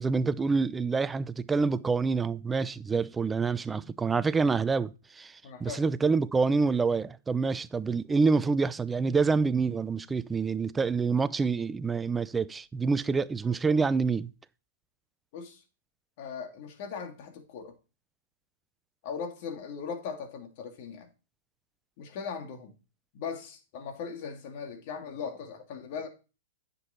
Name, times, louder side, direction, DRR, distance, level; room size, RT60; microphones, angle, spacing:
voice 1, 0.0-14.3, right 4 dB, 10° right, 0.5 m, -27 dB
voice 2, 5.4-5.8 15.3-15.6 16.2-17.7 19.0-21.1 22.0-22.7 23.1-26.1, left 6 dB, 50° left, 2.7 m, -39 dB
9.9 x 7.0 x 4.5 m
hypercardioid pair, 125°, 0 cm